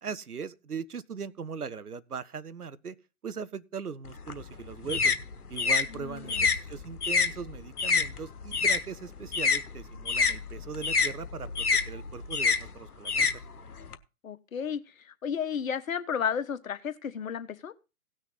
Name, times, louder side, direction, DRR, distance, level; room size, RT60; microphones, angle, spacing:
voice 1, 0.0-3.0 3.2-5.1 5.5-13.3, right 6 dB, 90° right, 1.0 m, -39 dB
sound 1, 4.1-8.8 9.1-14.0, left 5 dB, 90° left, 1.2 m, -27 dB
voice 2, 5.9-6.5 14.2-17.7, left 7 dB, 65° left, 1.3 m, -33 dB
17.5 x 6.4 x 4.0 m
figure-of-eight pair, 135°, 44 cm